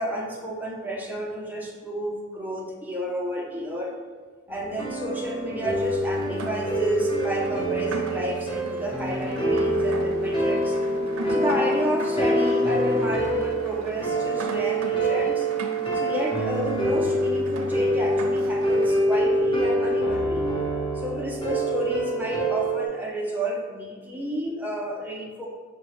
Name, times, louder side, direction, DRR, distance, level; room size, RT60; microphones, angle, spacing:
voice 1, 0.0-3.9 4.5-10.8 11.3-15.5 15.9-20.5 20.9-25.5, equal, 10° right, -2 dB, 0.5 m, -31 dB
sound 1, 4.5-22.9, right 1 dB, 25° left, 0.7 m, -25 dB
Rain, 5.7-19.1, right 1 dB, 85° right, 0.5 m, -40 dB
5.6 x 2.2 x 3.1 m, 1.5 s
head